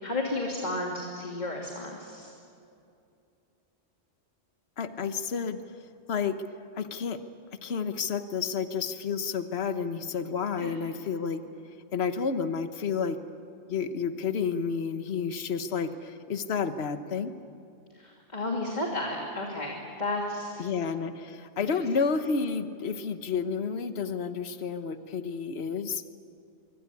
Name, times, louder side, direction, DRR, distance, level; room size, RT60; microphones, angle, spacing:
voice 1, 0.0-2.3 10.6-10.7 18.0-20.7, left 2 dB, 35° left, -1 dB, 2.9 m, -33 dB
voice 2, 4.8-5.6 6.1-6.3 6.8-7.2 7.6-11.4 11.9-13.2 13.7-17.3 20.6-26.0, left 6 dB, 60° left, 9 dB, 1.4 m, -30 dB
25.0 x 24.5 x 8.5 m, 2.6 s
omnidirectional pair, 1.3 m